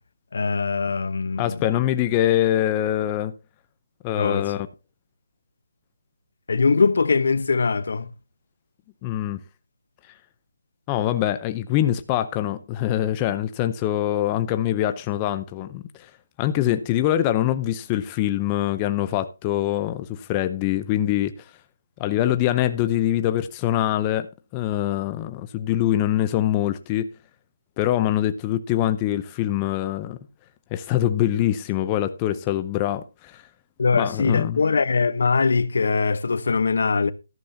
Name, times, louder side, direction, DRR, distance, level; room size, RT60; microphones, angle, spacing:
voice 1, 0.3-1.6 4.2-4.5 6.5-8.1 33.8-37.1, left 4 dB, 65° left, 0.9 m, -22 dB
voice 2, 1.4-3.3 4.0-4.7 9.0-9.4 10.9-16.1 16.4-21.5 22.0-27.1 27.8-30.2 30.7-33.4 33.9-34.6, left 12 dB, 20° left, 0.6 m, -24 dB
13.5 x 11.5 x 2.8 m
figure-of-eight pair, 160°, 0 cm